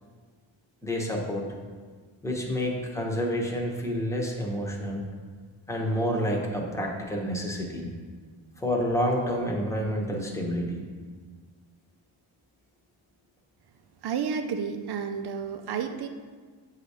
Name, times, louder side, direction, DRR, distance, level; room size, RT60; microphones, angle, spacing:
voice 1, 0.8-1.4 2.2-5.0 5.7-7.9 8.6-10.8, equal, 5° left, -1 dB, 1.1 m, -29 dB
voice 2, 14.0-16.1, right 6 dB, 50° right, 7 dB, 0.5 m, -31 dB
7.6 x 2.8 x 4.8 m, 1.5 s
cardioid pair, 55°, 50 cm